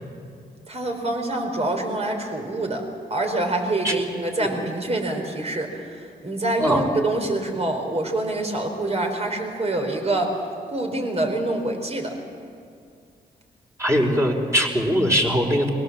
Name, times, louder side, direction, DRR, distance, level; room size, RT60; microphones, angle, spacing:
voice 1, 0.7-10.4 10.7-12.2, right 2 dB, 35° right, 3 dB, 4.6 m, -26 dB
voice 2, 13.8-15.7, equal, 15° right, 0 dB, 4.7 m, -21 dB
23.5 x 18.0 x 7.5 m, 2.3 s
supercardioid pair, 50°, 19 cm